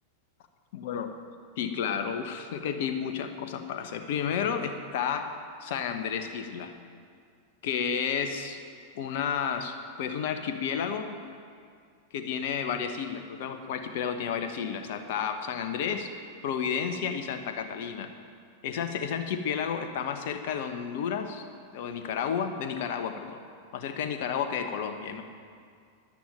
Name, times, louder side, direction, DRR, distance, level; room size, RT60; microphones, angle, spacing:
voice 1, 0.7-1.1 1.6-5.3 5.6-6.7 7.6-8.6 8.9-11.2 12.1-16.1 16.4-18.1 18.6-21.4 21.7-23.4 23.7-25.2, left 7 dB, 50° left, 7 dB, 1.2 m, -31 dB
11.0 x 9.9 x 9.1 m, 2.2 s
figure-of-eight pair, 90°, 0 cm